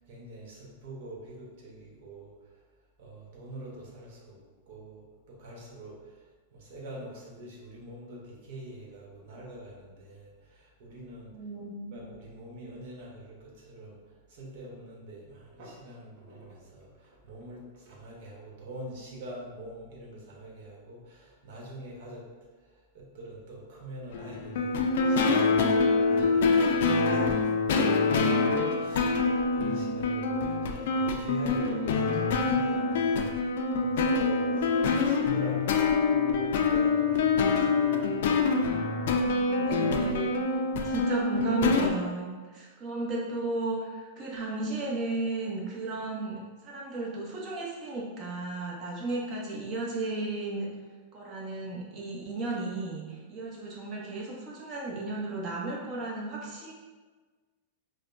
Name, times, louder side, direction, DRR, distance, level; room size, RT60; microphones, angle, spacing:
voice 1, 0.0-2.3 3.0-6.2 6.5-11.3 11.9-14.0 14.3-22.3 22.7-36.0 36.3-38.8, right 1 dB, 60° right, -3 dB, 1.2 m, -45 dB
voice 2, 11.3-12.0 39.2-40.4 40.8-50.7 51.1-56.7, right 2 dB, 30° right, -3 dB, 0.9 m, -34 dB
sound 1, 24.1-41.9, left 4 dB, 65° left, 0.4 m, -25 dB
5.0 x 2.2 x 2.6 m, 1.4 s
supercardioid pair, 150°, 0 cm